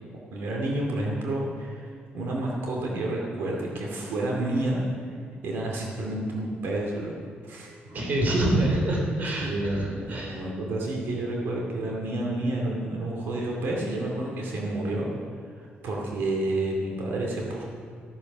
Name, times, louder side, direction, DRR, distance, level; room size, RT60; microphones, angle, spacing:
voice 1, 0.3-5.2 5.4-7.1 7.4-7.7 9.4-15.1 15.6-17.6, right 1 dB, 90° right, -1 dB, 2.3 m, -30 dB
voice 2, 7.8-10.4, right 1 dB, 50° right, 0 dB, 2.8 m, -26 dB
14.5 x 9.3 x 6.1 m, 2.2 s
cardioid pair, 130°, 4 cm